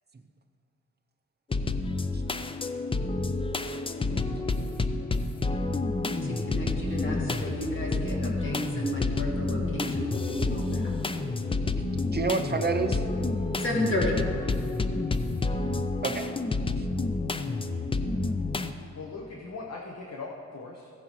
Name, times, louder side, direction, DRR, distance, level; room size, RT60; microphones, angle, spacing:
sound 1, 1.5-18.7, left 3 dB, 20° left, 0.3 m, -29 dB
voice 1, 6.1-11.3 13.5-16.0, left 1 dB, 40° left, -2 dB, 1.8 m, -33 dB
voice 2, 11.7-13.1 16.0-16.4 16.8-16.9, right 4 dB, 35° right, 6 dB, 0.6 m, -30 dB
voice 3, 18.0-18.3 18.9-20.9, left 3 dB, 60° left, -1 dB, 1.0 m, -40 dB
15.5 x 9.3 x 3.1 m, 2.4 s
wide cardioid pair, 130°, 29 cm